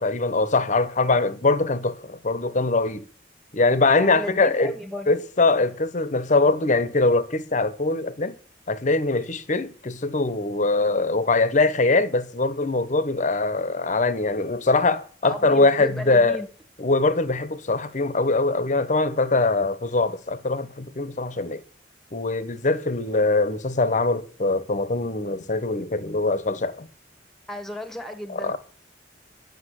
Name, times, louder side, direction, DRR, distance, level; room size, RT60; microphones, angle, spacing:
voice 1, 0.0-3.1 3.5-4.7 5.1-8.3 8.7-16.4 16.8-21.6 22.1-26.9 28.3-28.6, left 3 dB, 40° left, 0.9 m, -22 dB
voice 2, 3.9-5.1 15.2-16.5 27.5-28.6, left 1 dB, ahead, 1.3 m, -34 dB
10.0 x 6.8 x 8.1 m
head